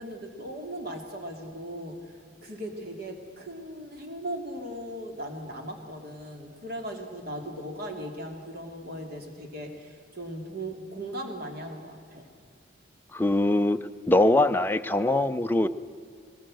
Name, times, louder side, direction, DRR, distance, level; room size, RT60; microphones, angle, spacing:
voice 1, 0.0-2.0 2.4-12.3, right 1 dB, 50° right, 3 dB, 2.9 m, -38 dB
voice 2, 13.1-13.8 14.1-15.7, left 1 dB, 10° left, 8 dB, 0.5 m, -22 dB
20.5 x 19.0 x 7.7 m, 2.3 s
head